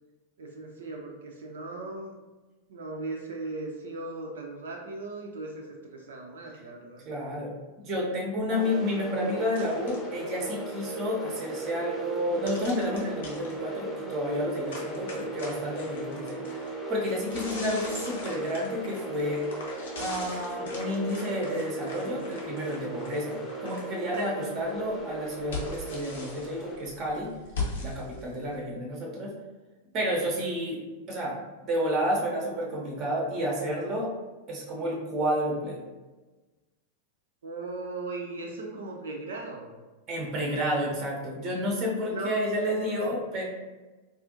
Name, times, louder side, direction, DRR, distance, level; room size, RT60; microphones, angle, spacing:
voice 1, 0.4-2.1 2.7-7.0 37.4-39.7 42.0-43.1, right 3 dB, 65° right, 0 dB, 0.5 m, -37 dB
voice 2, 7.1-16.4 16.9-19.4 20.0-27.3 27.8-29.3 29.9-30.8 31.1-31.3 31.6-34.1 34.5-35.8 40.1-43.4, equal, 35° right, -1 dB, 0.8 m, -30 dB
sound 1, 8.5-26.8, right 2 dB, 15° left, 0.8 m, -37 dB
sound 2, 9.5-10.1 12.5-13.5 14.7-16.7 17.2-24.2 24.6-28.6, left 3 dB, 65° left, 0.8 m, -40 dB
4.1 x 2.5 x 2.6 m, 1.2 s
figure-of-eight pair, 90°, 0 cm